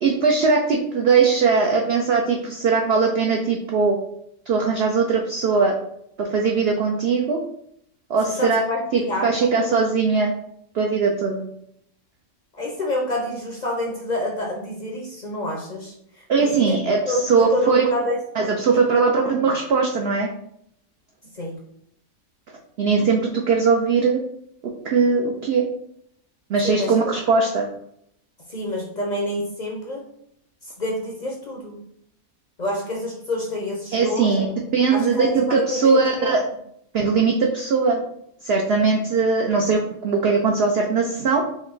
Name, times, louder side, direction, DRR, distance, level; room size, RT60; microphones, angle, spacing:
voice 1, 0.0-4.0 4.5-5.8 6.2-7.4 8.1-8.6 8.9-10.3 10.7-11.5 16.3-17.0 17.3-17.8 18.4-20.3 22.8-24.2 24.8-25.6 26.5-27.7 33.9-36.4 36.9-38.0 38.4-41.4, right 4 dB, 65° right, 1 dB, 0.6 m, -20 dB
voice 2, 8.2-9.3 12.5-16.7 17.1-18.2 18.7-19.3 21.3-21.6 26.6-26.9 28.5-30.1 30.6-31.8 32.6-34.3 34.9-36.3, left 1 dB, 45° left, -1 dB, 0.6 m, -28 dB
5.1 x 2.1 x 3.8 m, 0.72 s
omnidirectional pair, 1.5 m